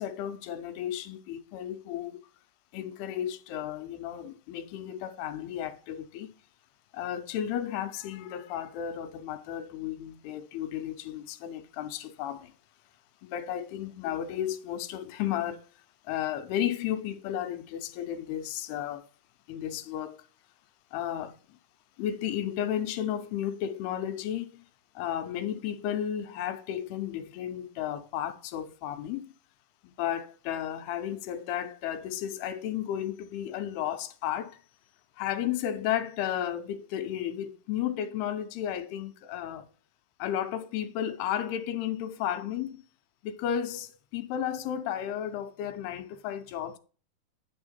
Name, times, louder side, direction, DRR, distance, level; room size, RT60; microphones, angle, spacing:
voice 1, 0.0-2.3 2.7-6.3 6.9-12.5 13.2-15.7 16.0-19.1 19.5-20.3 20.9-21.6 22.0-24.6 25.0-29.3 29.8-34.6 35.2-39.7 40.2-42.8 43.2-46.8, left 10 dB, 85° left, 2.7 m, -33 dB
9.5 x 4.5 x 4.2 m
omnidirectional pair, 4.6 m